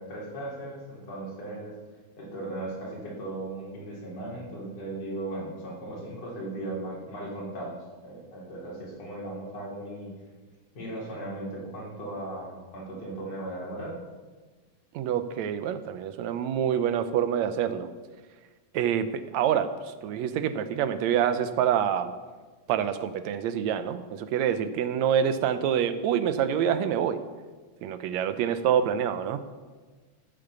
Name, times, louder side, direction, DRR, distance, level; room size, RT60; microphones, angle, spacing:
voice 1, 0.0-1.8 2.2-7.8 8.0-10.1 10.7-13.9, right 1 dB, 60° left, -5 dB, 4.8 m, -37 dB
voice 2, 14.9-17.9 18.7-19.8 20.0-22.1 22.7-27.2 27.8-29.4, right 9 dB, 75° right, 11 dB, 1.9 m, -26 dB
14.5 x 7.7 x 6.9 m, 1.4 s
omnidirectional pair, 3.4 m